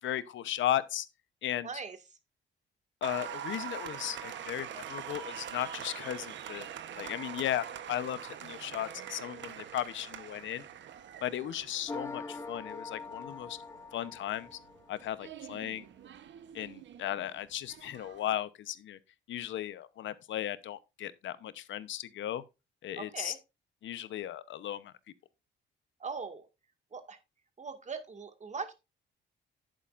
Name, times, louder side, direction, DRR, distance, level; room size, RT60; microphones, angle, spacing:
voice 1, 0.0-1.1 1.4-1.7 3.0-6.7 7.0-10.7 11.2-13.6 13.9-14.5 14.9-15.8 16.5-19.0 19.3-22.4 22.8-23.4 23.8-24.9, left 12 dB, 75° left, 0.9 m, -36 dB
voice 2, 1.6-2.0 23.0-23.4 26.0-26.4 26.9-27.2 27.6-28.7, right 5 dB, 35° right, 2.0 m, -40 dB
Applause, 3.0-18.3, right 9 dB, 65° right, 1.1 m, -44 dB
sound 1, 11.9-15.3, left 4 dB, 15° left, 0.4 m, -43 dB
11.0 x 8.6 x 2.5 m
cardioid pair, 90°, 20 cm